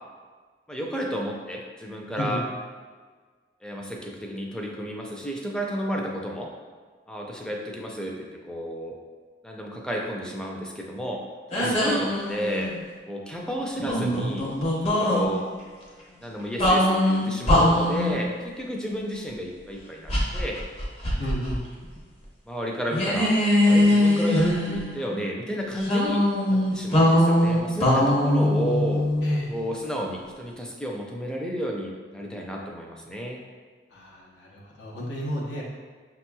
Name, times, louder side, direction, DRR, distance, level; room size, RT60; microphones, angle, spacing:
voice 1, 0.7-2.4 3.6-6.5 7.1-9.0 9.4-11.2 11.5-12.7 13.1-14.5 14.8-15.5 16.2-20.6 22.5-23.4 23.7-29.1 29.5-33.4, equal, 5° left, -1 dB, 0.4 m, -31 dB
sound 1, 11.5-12.8 13.8-15.3 16.6-18.2 20.1-21.6 21.8-22.0 22.9-25.0 25.8-29.6, left 1 dB, 35° left, 0.8 m, -22 dB
voice 2, 21.2-21.6 29.2-29.5 33.9-35.6, equal, 80° left, -4 dB, 0.8 m, -32 dB
5.9 x 2.9 x 2.2 m, 1.5 s
head